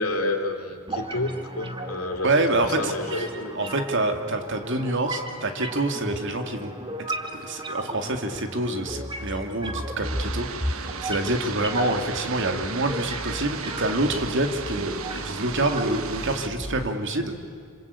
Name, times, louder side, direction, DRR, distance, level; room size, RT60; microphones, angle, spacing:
voice 1, 0.0-3.7 11.8-11.9, left 2 dB, 85° left, 3 dB, 3.3 m, -30 dB
sound 1, 0.9-16.9, right 1 dB, 25° right, 1.9 m, -35 dB
voice 2, 2.2-3.3 3.5-6.7 7.3-17.3, right 2 dB, 60° right, 6 dB, 2.5 m, -27 dB
sound 2, 10.0-16.5, right 6 dB, 75° right, 1.3 m, -35 dB
26.5 x 26.5 x 8.5 m, 2.2 s
head